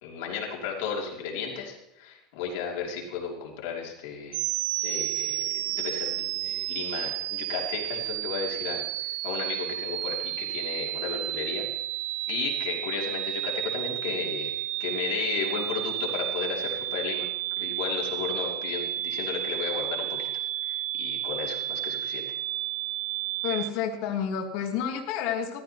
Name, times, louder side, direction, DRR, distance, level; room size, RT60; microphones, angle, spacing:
voice 1, 0.0-4.4 4.8-11.6 12.3-14.5 14.8-17.3 17.6-20.3 20.7-22.3, left 6 dB, 80° left, -1 dB, 3.0 m, -34 dB
sound 1, 4.3-23.7, right 16 dB, 60° right, 0.4 m, -32 dB
voice 2, 23.4-25.6, left 8 dB, 60° left, 2 dB, 1.6 m, -30 dB
14.0 x 13.0 x 3.0 m, 0.83 s
cardioid pair, 170°, 0 cm